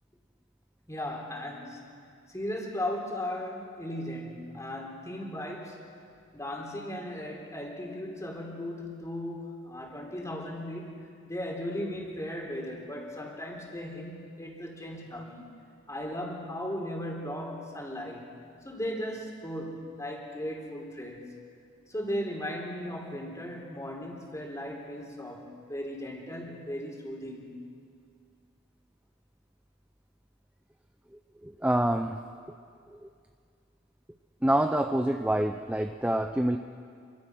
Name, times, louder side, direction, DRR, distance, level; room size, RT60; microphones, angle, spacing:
voice 1, 0.9-1.9 2.3-6.0 6.3-15.5 15.9-21.3 21.9-27.6, left 1 dB, 15° left, 0 dB, 3.8 m, -37 dB
voice 2, 31.4-32.2 33.0-33.1 34.4-36.6, right 1 dB, 5° right, 6 dB, 0.6 m, -26 dB
28.0 x 24.0 x 6.3 m, 2.2 s
head